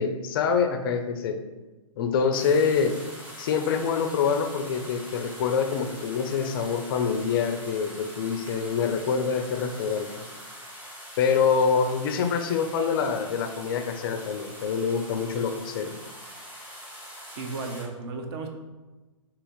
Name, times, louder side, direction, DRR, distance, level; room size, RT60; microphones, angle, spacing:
voice 1, 0.0-1.4 2.0-3.0 3.4-10.1 11.2-15.9, left 6 dB, 40° left, 7 dB, 0.4 m, -25 dB
sound 1, 2.3-17.8, equal, 10° right, 0.9 m, -43 dB
voice 2, 17.4-18.5, right 3 dB, 45° right, 4 dB, 0.7 m, -34 dB
4.0 x 2.8 x 3.9 m, 1.2 s
figure-of-eight pair, 120°, 18 cm